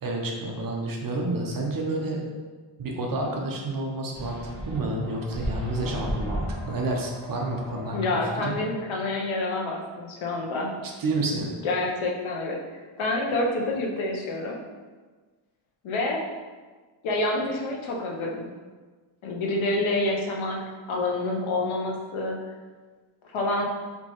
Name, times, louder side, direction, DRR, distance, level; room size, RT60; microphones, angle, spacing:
voice 1, 0.0-2.2 2.8-4.4 4.7-8.0 8.4-8.5 10.8-11.5, right 2 dB, 45° right, 0 dB, 0.7 m, -29 dB
sound 1, 4.1-8.7, equal, ahead, 1.2 m, -35 dB
voice 2, 7.9-10.7 11.6-14.6 15.8-16.2 17.0-18.5 19.2-20.6 20.9-22.4 23.3-23.7, left 2 dB, 75° left, -1 dB, 0.8 m, -27 dB
4.5 x 2.9 x 3.0 m, 1.4 s
wide cardioid pair, 135°, 48 cm